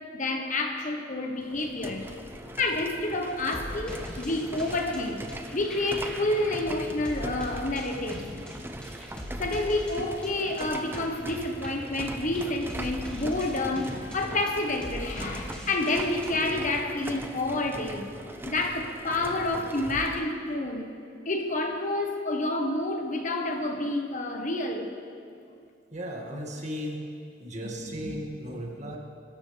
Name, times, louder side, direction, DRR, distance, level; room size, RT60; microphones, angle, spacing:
voice 1, 0.0-2.1 2.6-5.2 5.5-8.3 9.4-18.1 18.4-20.9 21.2-25.0, left 2 dB, 40° left, 1.2 m, -29 dB
sound 1, 1.4-20.3, right 1 dB, 10° right, 0.7 m, -41 dB
sound 2, 3.3-16.3, equal, 5° left, 2.2 m, -41 dB
voice 2, 25.9-27.1 27.4-29.0, equal, 40° right, 2.1 m, -35 dB
23.5 x 13.5 x 3.4 m
head